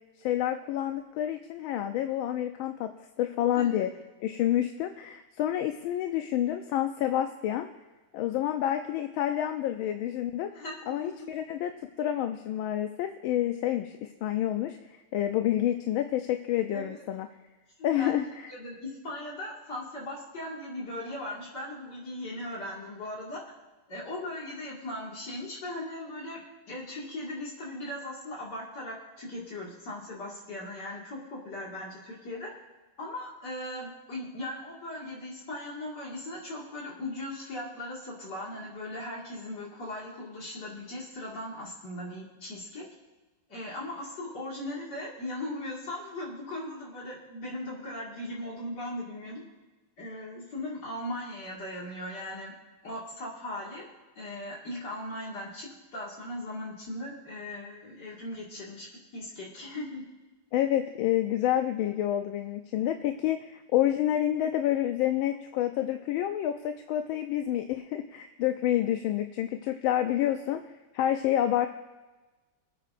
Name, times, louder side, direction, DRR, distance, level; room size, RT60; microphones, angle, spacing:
voice 1, 0.2-2.9 3.2-3.9 4.2-7.7 8.1-11.7 12.0-17.3 17.8-18.5 60.5-70.6 70.9-71.7, left 12 dB, 80° left, 6 dB, 1.4 m, -28 dB
voice 2, 10.5-11.3 16.7-17.0 17.8-18.2 18.5-23.4 23.9-26.4 26.7-32.5 33.0-42.9 43.5-49.4 50.0-52.5 52.8-53.9 54.2-60.0, left 1 dB, 55° left, -4 dB, 2.7 m, -38 dB
24.0 x 8.8 x 2.6 m, 1.2 s
omnidirectional pair, 2.3 m